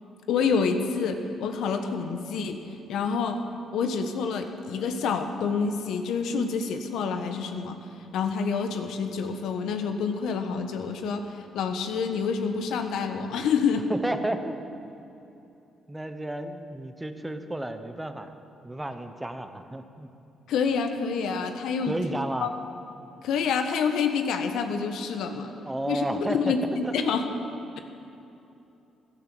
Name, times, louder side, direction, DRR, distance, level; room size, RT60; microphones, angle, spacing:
voice 1, 0.3-2.6 2.9-3.4 3.7-7.8 8.1-13.8 20.5-21.9 22.4-22.5 23.2-25.5 25.9-27.2, left 5 dB, 80° left, 6 dB, 1.2 m, -27 dB
voice 2, 13.9-14.6 15.9-18.3 18.6-20.1 21.9-22.5 25.4-26.5 26.8-27.1, right 1 dB, 10° right, 8 dB, 1.1 m, -32 dB
15.5 x 11.5 x 7.0 m, 2.9 s
cardioid pair, 90°, 0 cm